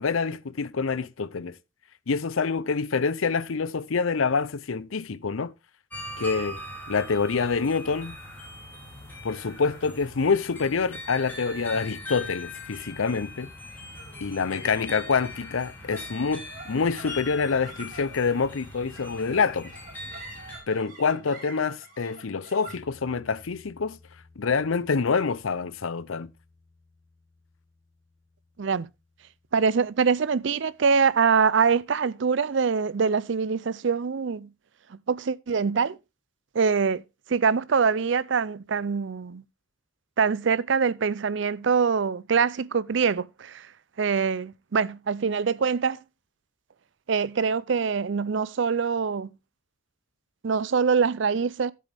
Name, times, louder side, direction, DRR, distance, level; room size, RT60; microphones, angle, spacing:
voice 1, 0.0-1.6 2.1-5.5 6.2-6.6 6.9-8.2 9.2-13.5 14.2-19.7 20.7-24.0 24.4-26.3, left 5 dB, 85° left, 0.7 m, -26 dB
sound 1, 5.9-20.6, left 1 dB, 10° left, 4.7 m, -41 dB
sound 2, 13.7-30.2, right 2 dB, 45° right, 5.8 m, -50 dB
voice 2, 28.6-28.9 29.5-34.5 34.9-36.0 36.5-37.0 37.3-39.4 40.2-43.7 44.0-46.0 47.1-49.3 50.4-51.7, right 5 dB, 65° right, 0.5 m, -24 dB
13.5 x 7.7 x 3.5 m
head